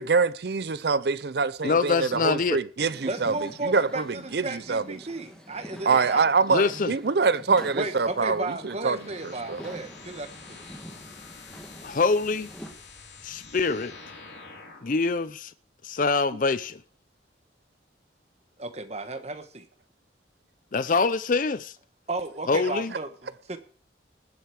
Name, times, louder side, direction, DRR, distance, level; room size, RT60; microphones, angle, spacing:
voice 1, 0.0-3.3 3.6-4.0 4.3-5.0 5.9-9.0 9.2-9.6, right 4 dB, 60° right, 0.6 m, -25 dB
voice 2, 1.6-2.6 6.5-6.9 11.8-12.5 13.2-13.9 14.8-15.5 15.8-16.8 20.7-21.7 22.5-22.9, left 4 dB, 45° left, 0.5 m, -25 dB
sound 1, 2.8-12.7, equal, 5° left, 1.9 m, -47 dB
voice 3, 3.0-6.3 7.7-10.6 18.6-19.7 22.1-23.6, right 2 dB, 35° right, 1.2 m, -34 dB
Firefox's Ignition, 8.6-15.0, left 4 dB, 70° left, 3.6 m, -47 dB
19.0 x 8.0 x 4.8 m
head